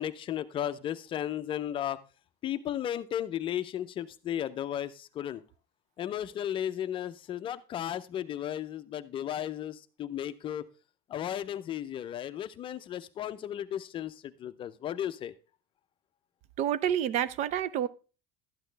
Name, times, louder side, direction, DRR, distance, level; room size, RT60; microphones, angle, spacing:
voice 1, 0.0-2.0 2.4-5.4 6.0-10.6 11.1-15.3, left 10 dB, 35° left, 0.6 m, -35 dB
voice 2, 16.6-17.9, right 10 dB, 45° right, 0.6 m, -28 dB
12.0 x 8.7 x 3.3 m
cardioid pair, 155°, 16 cm